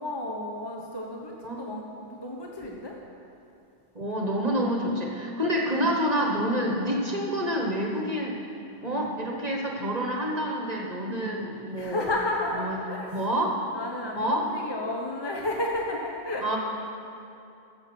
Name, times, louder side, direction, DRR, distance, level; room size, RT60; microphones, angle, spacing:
voice 1, 0.0-3.0 5.7-6.0 8.8-9.1 11.1-11.3 11.8-13.3 13.7-16.6, left 1 dB, 20° left, 0 dB, 0.9 m, -32 dB
voice 2, 3.9-8.4 8.8-12.1 12.6-12.8 13.1-13.7 14.2-14.5 16.4-16.6, equal, 35° right, 0 dB, 1.2 m, -28 dB
14.0 x 7.2 x 6.1 m, 2.7 s
omnidirectional pair, 1.3 m